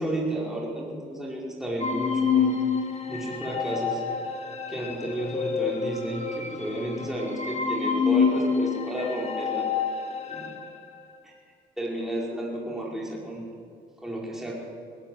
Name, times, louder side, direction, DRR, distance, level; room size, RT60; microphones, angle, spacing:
voice 1, 0.0-2.5 3.1-4.0 4.7-9.7 10.3-10.5 11.2-11.3 11.8-13.4 14.0-14.6, right 1 dB, ahead, -4 dB, 5.3 m, -32 dB
sound 1, 1.8-10.8, left 6 dB, 35° left, 2.2 m, -28 dB
19.5 x 17.5 x 7.9 m, 2.3 s
cardioid pair, 90°, 20 cm